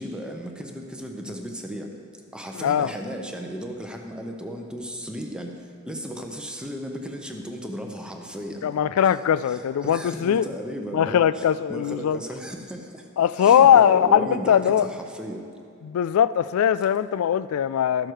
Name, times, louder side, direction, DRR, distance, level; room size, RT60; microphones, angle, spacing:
voice 1, 0.0-1.9 2.3-8.7 9.4-13.1 13.4-15.5, equal, 5° right, 2 dB, 0.8 m, -35 dB
voice 2, 2.6-2.9 8.6-10.5 10.9-12.2 13.2-14.9 15.8-18.1, left 9 dB, 75° left, 16 dB, 0.3 m, -20 dB
13.5 x 6.4 x 4.6 m, 2.5 s
head